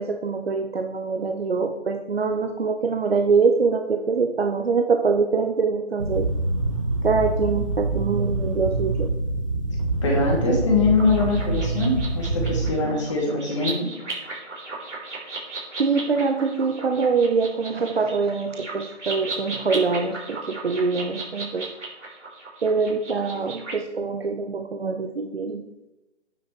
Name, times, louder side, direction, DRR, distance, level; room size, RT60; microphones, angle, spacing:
voice 1, 0.0-6.3 7.0-9.1 15.8-21.7 22.6-25.6, right 4 dB, 55° right, 6 dB, 0.8 m, -24 dB
sound 1, 6.0-12.7, right 2 dB, 25° right, 0.9 m, -25 dB
voice 2, 10.0-13.9, left 3 dB, 25° left, -2 dB, 2.7 m, -23 dB
sound 2, 11.0-23.7, right 3 dB, 85° right, 4.2 m, -36 dB
9.3 x 8.1 x 4.5 m, 0.97 s
figure-of-eight pair, 170°, 35 cm